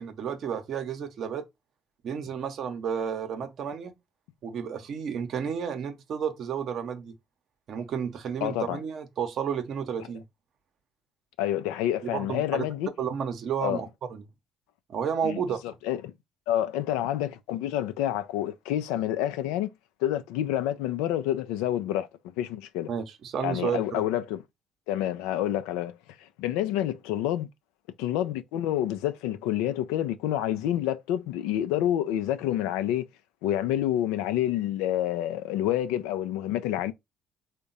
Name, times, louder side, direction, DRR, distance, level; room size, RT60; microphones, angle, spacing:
voice 1, 0.0-1.4 2.0-3.9 4.4-7.2 7.7-10.2 12.0-12.7 13.0-14.2 14.9-15.6 22.9-24.0, right 7 dB, 60° right, 0.7 m, -31 dB
voice 2, 8.4-8.8 11.4-12.9 13.6-13.8 15.2-15.4 15.8-16.1 16.5-19.7 20.0-22.1 22.4-22.9 23.4-24.4 24.9-26.0 26.4-27.5 28.0-33.1 33.4-36.9, left 12 dB, 80° left, 0.4 m, -28 dB
3.6 x 2.2 x 3.9 m
hypercardioid pair, 55°, 0 cm